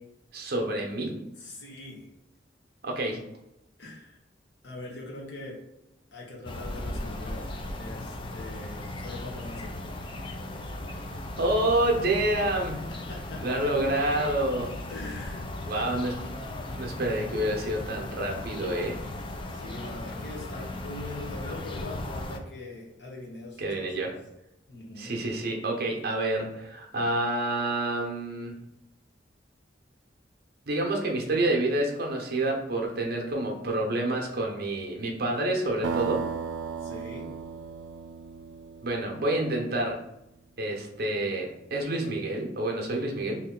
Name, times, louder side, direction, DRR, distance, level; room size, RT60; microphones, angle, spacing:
voice 1, 0.3-1.2 2.8-3.2 11.4-12.9 13.4-14.7 15.7-16.2 16.8-19.0 23.6-24.1 25.0-28.5 30.7-36.2 38.8-40.0 40.6-43.4, right 1 dB, 60° right, 1 dB, 0.7 m, -28 dB
voice 2, 1.4-2.1 3.8-4.2 4.6-5.6 6.1-7.5 7.8-9.9 12.9-13.6 14.9-16.0 19.5-24.1 24.7-25.1 36.8-37.3, left 2 dB, 70° left, -2 dB, 1.0 m, -42 dB
sound 1, 6.4-22.4, left 1 dB, 30° left, 0.4 m, -37 dB
sound 2, 35.8-39.6, right 6 dB, 85° right, 0.3 m, -35 dB
2.9 x 2.7 x 3.7 m, 0.86 s
head